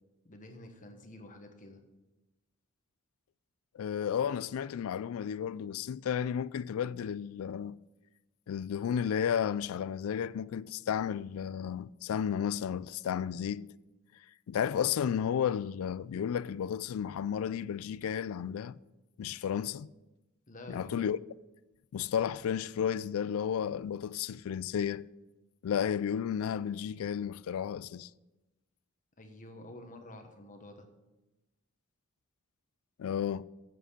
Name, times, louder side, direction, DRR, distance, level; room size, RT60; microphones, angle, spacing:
voice 1, 0.2-1.8 20.5-21.0 29.2-30.9, left 1 dB, 40° left, 1.2 m, -49 dB
voice 2, 3.7-7.8 8.5-13.7 14.5-18.7 19.2-19.9 20.7-21.2 21.9-25.1 25.6-28.1 33.0-33.4, left 8 dB, 70° left, 0.3 m, -33 dB
7.7 x 7.5 x 6.6 m
head